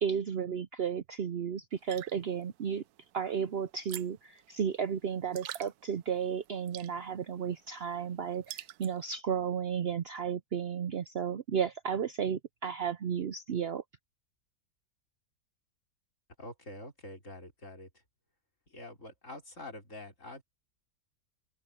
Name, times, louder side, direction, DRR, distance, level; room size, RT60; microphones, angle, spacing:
voice 1, 0.0-2.8 3.1-13.8, right 7 dB, 55° right, 0.7 m, -33 dB
sound 1, 1.7-9.2, right 13 dB, 90° right, 1.1 m, -49 dB
voice 2, 16.4-17.9 18.7-20.4, left 1 dB, 55° left, 5.4 m, -46 dB
open air
omnidirectional pair, 1.6 m